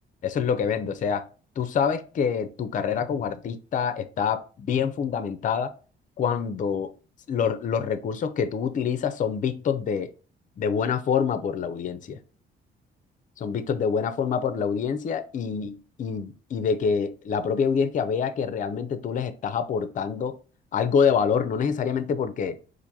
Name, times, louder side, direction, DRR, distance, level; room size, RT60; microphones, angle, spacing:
voice 1, 0.2-1.2 1.6-5.7 6.2-6.9 7.3-10.1 10.6-12.2 13.4-20.4 20.7-22.6, left 6 dB, 40° left, 0.4 m, -26 dB
4.3 x 2.5 x 2.7 m
cardioid pair, 90°, 20 cm